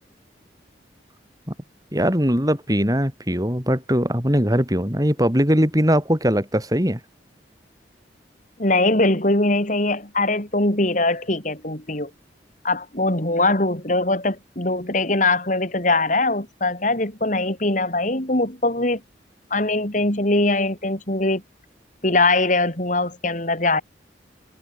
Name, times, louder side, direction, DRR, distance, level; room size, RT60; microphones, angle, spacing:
voice 1, 1.9-7.0, equal, 20° right, 7.5 m, -20 dB
voice 2, 8.6-12.1 12.6-19.0 19.5-21.4 22.0-23.8, left 2 dB, 45° left, 4.4 m, -21 dB
head